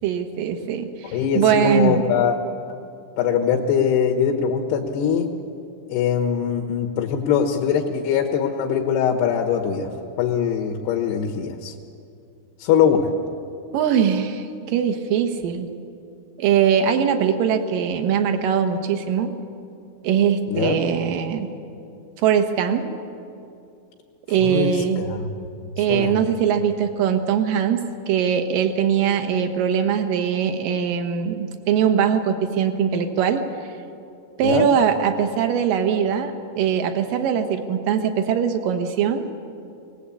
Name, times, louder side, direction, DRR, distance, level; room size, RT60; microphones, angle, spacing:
voice 1, 0.0-2.0 13.7-15.7 16.4-19.3 20.0-21.5 22.2-22.9 24.3-25.0 25.8-33.4 34.4-39.3, right 8 dB, 65° right, 7 dB, 2.8 m, -21 dB
voice 2, 1.1-2.4 2.7-2.8 3.2-5.3 5.9-9.9 10.2-11.7 12.6-13.1 20.5-20.8 24.4-25.3 25.9-26.1 34.4-34.7, left 7 dB, 80° left, 2 dB, 3.4 m, -22 dB
23.0 x 19.5 x 8.5 m, 2.6 s
omnidirectional pair, 4.7 m